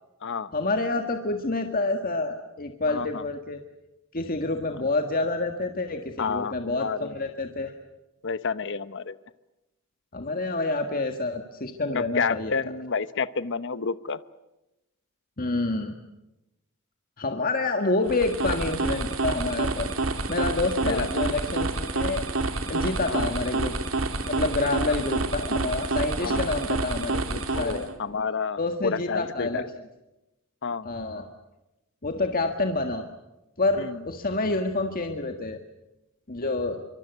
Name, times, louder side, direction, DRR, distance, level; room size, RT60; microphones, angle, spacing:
voice 1, 0.5-3.6 4.1-7.7 10.1-12.6 15.4-15.9 17.2-19.9 20.3-22.2 22.7-23.7 24.3-27.9 28.6-29.6 30.9-31.2 32.0-33.1 33.6-35.6 36.3-36.9, left 2 dB, 45° left, 5 dB, 1.7 m, -28 dB
voice 2, 2.9-3.2 6.2-7.1 8.2-9.2 11.9-14.2 20.8-21.1 23.1-23.3 26.2-26.5 27.5-29.6 30.6-30.9 33.8-34.0, left 5 dB, 60° left, 15 dB, 0.9 m, -30 dB
sound 1, 18.0-27.9, right 2 dB, 75° right, 2.7 m, -28 dB
25.5 x 24.5 x 8.2 m, 0.96 s
head